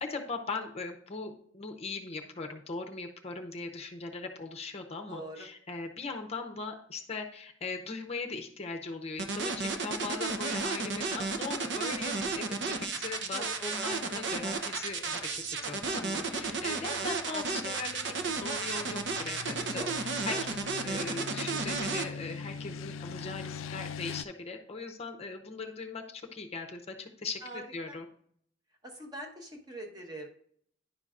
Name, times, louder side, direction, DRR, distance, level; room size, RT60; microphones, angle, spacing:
voice 1, 0.0-28.1, left 3 dB, 35° left, 3 dB, 0.7 m, -39 dB
voice 2, 5.1-5.5 13.3-13.8 19.7-19.9 20.3-20.4 27.4-28.0 28.8-30.3, right 1 dB, 20° right, 0 dB, 1.1 m, -43 dB
sound 1, 9.2-22.0, right 4 dB, 65° right, 0.8 m, -33 dB
sound 2, 11.4-24.2, left 6 dB, 85° left, 0.3 m, -45 dB
10.0 x 5.6 x 2.5 m, 0.63 s
head